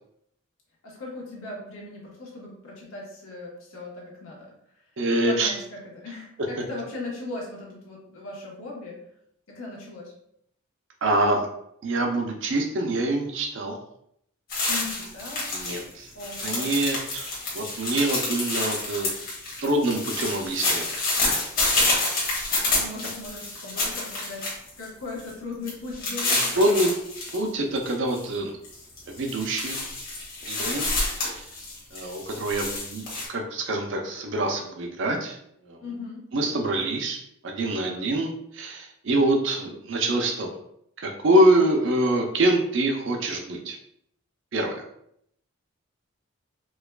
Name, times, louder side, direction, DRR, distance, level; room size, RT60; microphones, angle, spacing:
voice 1, 0.8-4.5 5.1-9.0 9.5-10.1 14.7-15.5 16.1-16.8 22.6-24.5 24.8-26.8 35.8-36.3 37.7-38.1, left 2 dB, 85° left, -4 dB, 1.2 m, -38 dB
voice 2, 5.0-5.5 11.0-11.5 11.8-13.8 15.5-16.1 16.4-19.1 19.6-21.0 26.2-26.9 27.3-28.5 29.1-29.9 30.4-30.9 31.2-31.5 31.9-35.4 35.7-35.8 36.3-37.2 37.4-40.6 41.0-43.8 44.5-44.8, right 1 dB, 60° right, 2 dB, 0.5 m, -25 dB
sound 1, 14.5-15.8 16.1-24.8 25.2-25.3 25.7-27.4 27.8-28.2 28.6-33.3, left 2 dB, 45° left, 1.2 m, -28 dB
4.6 x 2.3 x 2.2 m, 0.72 s
head